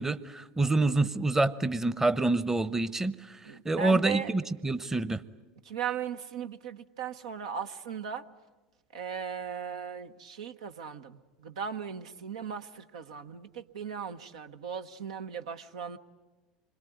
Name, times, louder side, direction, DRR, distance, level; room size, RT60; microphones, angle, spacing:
voice 1, 0.0-3.1 3.6-5.2, right 2 dB, 10° right, 14 dB, 0.9 m, -27 dB
voice 2, 3.4-4.3 5.6-8.2 8.9-16.0, right 7 dB, 75° right, 7 dB, 1.0 m, -37 dB
27.0 x 22.0 x 9.4 m, 1.2 s
hypercardioid pair, 80°, 4 cm